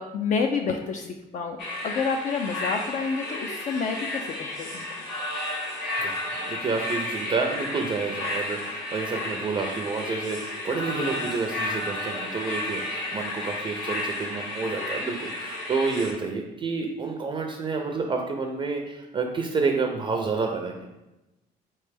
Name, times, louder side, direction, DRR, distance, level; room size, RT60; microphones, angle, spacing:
voice 1, 0.0-4.9, left 5 dB, 50° left, 4 dB, 0.4 m, -29 dB
sound 1, 1.6-16.1, left 1 dB, 85° left, 1.3 m, -32 dB
voice 2, 6.5-20.9, right 4 dB, 30° right, 3 dB, 0.4 m, -29 dB
4.2 x 3.2 x 3.4 m, 0.99 s
cardioid pair, 110°, 17 cm